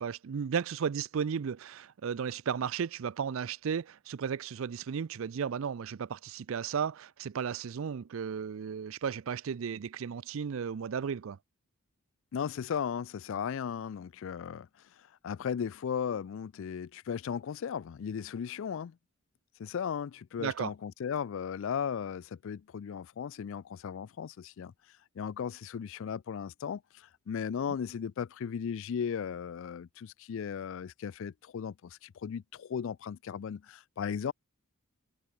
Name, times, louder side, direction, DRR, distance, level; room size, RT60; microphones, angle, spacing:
voice 1, 0.0-11.4 20.4-20.7, right 7 dB, 60° right, 0.4 m, -34 dB
voice 2, 12.3-14.7 15.0-19.0 19.6-24.7 25.2-34.3, left 7 dB, 60° left, 0.3 m, -36 dB
head